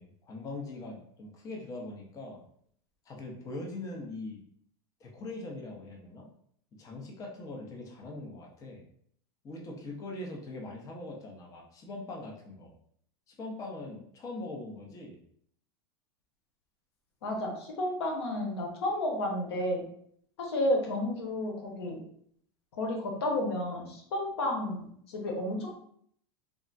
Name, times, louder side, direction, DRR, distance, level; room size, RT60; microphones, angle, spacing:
voice 1, 0.0-2.4 3.1-4.4 5.0-6.3 6.8-8.8 9.4-12.7 13.3-15.2, left 2 dB, 25° left, -1 dB, 0.6 m, -41 dB
voice 2, 17.2-19.8 20.4-22.0 22.7-25.7, left 1 dB, 90° left, 1 dB, 0.8 m, -31 dB
3.5 x 2.0 x 2.5 m, 0.65 s
supercardioid pair, 130°, 13 cm